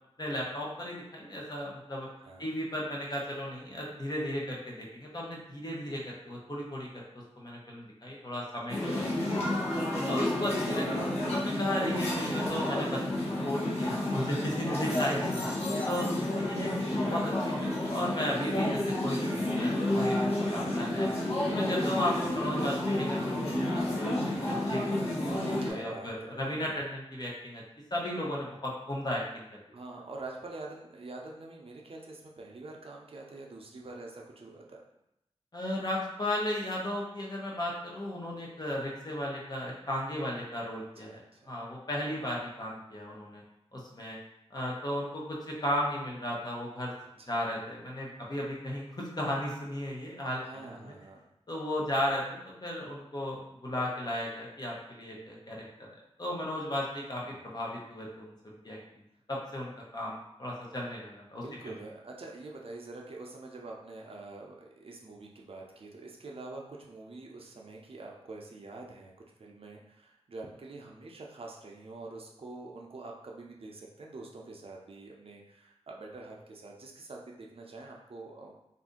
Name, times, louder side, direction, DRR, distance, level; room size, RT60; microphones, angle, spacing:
voice 1, 0.2-2.1 2.4-6.9 7.4-9.4 10.1-11.0 11.3-15.3 15.8-20.2 20.5-21.1 21.5-24.2 24.5-24.8 25.6-27.6 27.9-29.8 35.5-41.2 41.5-43.4 43.7-44.2 44.5-46.9 47.3-50.8 51.5-55.6 56.2-58.8 59.3-61.7, left 1 dB, 40° left, -3 dB, 0.8 m, -35 dB
sound 1, 8.7-25.7, left 1 dB, 70° left, 0.9 m, -30 dB
voice 2, 9.0-9.5 14.9-15.9 20.7-21.0 25.6-26.8 29.7-34.8 41.0-41.5 47.2-47.4 50.4-51.3 57.2-57.5 61.3-69.1 69.4-78.5, right 2 dB, 60° right, -1 dB, 0.5 m, -46 dB
2.6 x 2.5 x 3.7 m, 0.84 s
wide cardioid pair, 75°, 11 cm